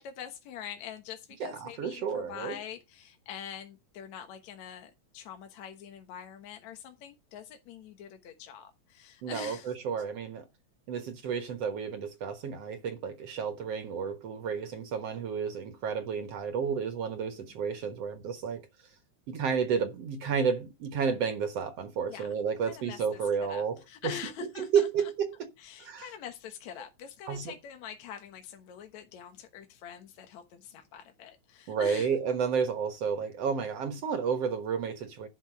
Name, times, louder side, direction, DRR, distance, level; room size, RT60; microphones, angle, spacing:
voice 1, 0.0-9.7 22.1-22.4 22.7-23.2 23.5-24.9 25.6-32.1, left 9 dB, 70° left, 2.5 m, -44 dB
voice 2, 1.4-2.6 9.2-10.5 10.9-18.7 19.3-24.1 24.4-25.5 25.8-26.1 27.3-27.5 31.7-35.3, right 6 dB, 60° right, 2.2 m, -31 dB
11.5 x 5.9 x 5.8 m
omnidirectional pair, 3.4 m